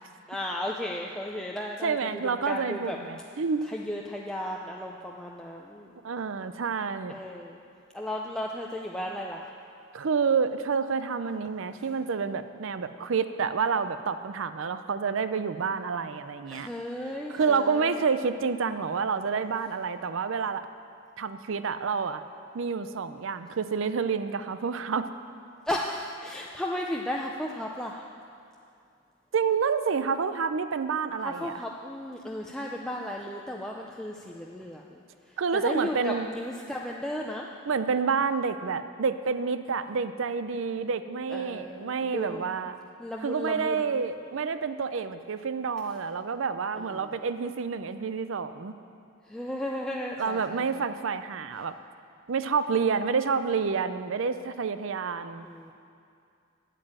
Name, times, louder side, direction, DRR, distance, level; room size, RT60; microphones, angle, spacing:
voice 1, 0.3-3.0 3.7-5.9 7.1-7.6 7.9-9.5 16.5-17.9 25.7-28.1 31.2-34.8 35.5-37.5 41.3-42.5 43.0-44.0 46.8-47.1 49.3-50.6 55.4-55.7, left 1 dB, 5° left, -2 dB, 0.5 m, -35 dB
voice 2, 1.8-3.7 6.0-7.2 9.9-16.7 17.3-20.6 21.2-22.2 22.5-25.1 29.3-31.5 35.4-36.3 37.6-42.7 43.2-48.7 50.2-51.7 52.3-55.4, right 5 dB, 65° right, 11 dB, 0.5 m, -28 dB
8.9 x 7.6 x 8.8 m, 2.4 s
head